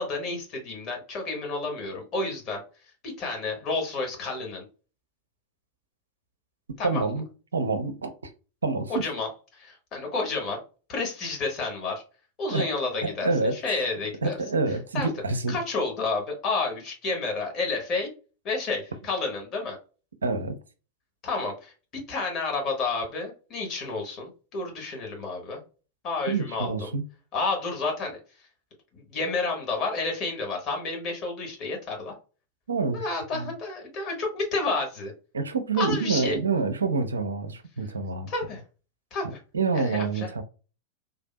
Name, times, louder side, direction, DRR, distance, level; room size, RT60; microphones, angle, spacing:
voice 1, 0.0-2.6 3.0-4.6 6.8-7.1 8.9-10.6 10.9-12.0 12.4-14.4 14.9-15.1 15.5-18.1 18.4-19.8 21.2-25.6 26.0-26.9 27.3-28.2 28.9-32.1 32.9-35.1 35.8-36.4 38.3-38.6 39.1-39.4 39.7-40.3, left 3 dB, 35° left, 1.3 m, -30 dB
voice 2, 6.8-7.3 7.5-8.3 8.6-9.0 12.5-12.7 13.0-13.6 14.2-15.6 20.2-20.6 26.3-27.0 32.7-33.1 33.3-33.5 35.3-38.3 39.5-40.4, right 4 dB, 75° right, 0.5 m, -27 dB
3.5 x 2.5 x 2.2 m
figure-of-eight pair, 90°, 0 cm